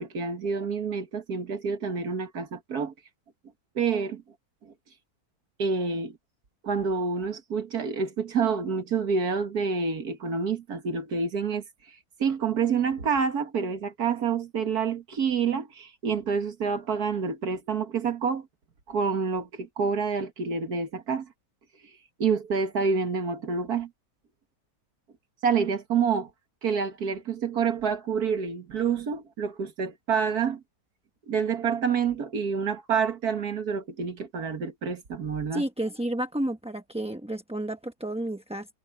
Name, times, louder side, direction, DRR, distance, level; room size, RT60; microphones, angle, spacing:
voice 1, 0.0-2.9 3.8-4.2 4.6-4.7 5.6-6.2 6.6-11.6 12.2-18.5 18.9-21.3 22.2-23.9 25.4-26.3 26.6-30.6 31.3-35.6, right 6 dB, 85° right, 2.2 m, -28 dB
voice 2, 35.5-38.7, right 1 dB, 5° right, 0.7 m, -31 dB
omnidirectional pair, 1.6 m